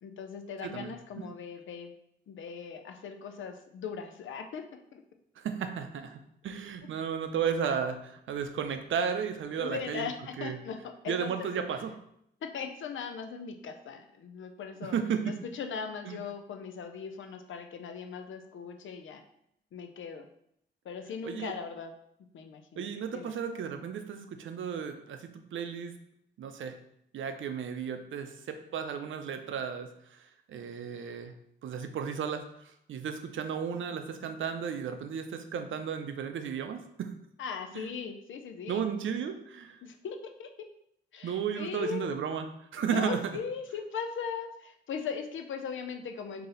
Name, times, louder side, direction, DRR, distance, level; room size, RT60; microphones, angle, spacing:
voice 1, 0.0-1.9 2.3-5.0 9.5-11.5 12.4-15.0 15.3-19.2 19.7-20.3 20.8-21.9 22.3-23.3 37.4-38.8 39.8-40.5 41.1-42.2 42.8-46.5, left 6 dB, 80° left, 6 dB, 0.5 m, -39 dB
voice 2, 0.6-1.2 5.4-10.1 10.4-10.6 11.1-11.9 14.8-15.4 16.0-16.2 21.2-21.5 22.8-25.9 26.4-26.7 27.1-31.3 31.6-37.1 37.7-37.9 38.7-39.8 41.2-42.5 42.7-43.2, right 7 dB, 85° right, 7 dB, 0.5 m, -34 dB
4.0 x 2.8 x 3.8 m, 0.75 s
wide cardioid pair, 105°, 20 cm